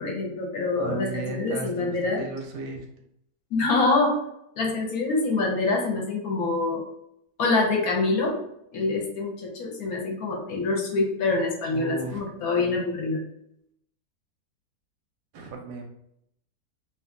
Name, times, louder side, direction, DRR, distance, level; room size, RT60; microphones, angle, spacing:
voice 1, 0.0-2.3 3.5-4.2 4.6-6.8 7.4-8.4 8.7-13.2, left 3 dB, 70° left, 0 dB, 1.0 m, -25 dB
voice 2, 0.8-2.8 11.7-12.2 15.3-15.8, right 3 dB, 85° right, 2 dB, 1.2 m, -35 dB
2.9 x 2.3 x 2.5 m, 0.75 s
omnidirectional pair, 1.8 m